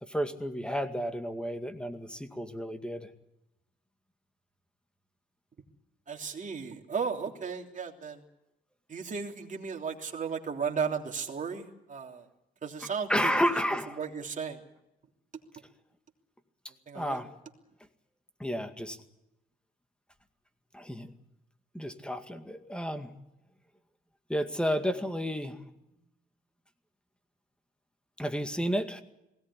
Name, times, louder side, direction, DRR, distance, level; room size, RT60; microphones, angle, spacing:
voice 1, 0.0-3.1 13.1-14.0 16.9-17.3 18.4-19.0 20.7-21.1 21.7-23.1 24.3-25.6 28.2-29.0, equal, 5° left, 8 dB, 2.1 m, -31 dB
voice 2, 6.1-8.2 8.9-12.3 12.6-13.4 14.0-14.6 16.9-17.2, right 6 dB, 40° right, 2 dB, 3.2 m, -35 dB
20.5 x 17.5 x 9.9 m, 0.90 s
cardioid pair, 90°, 20 cm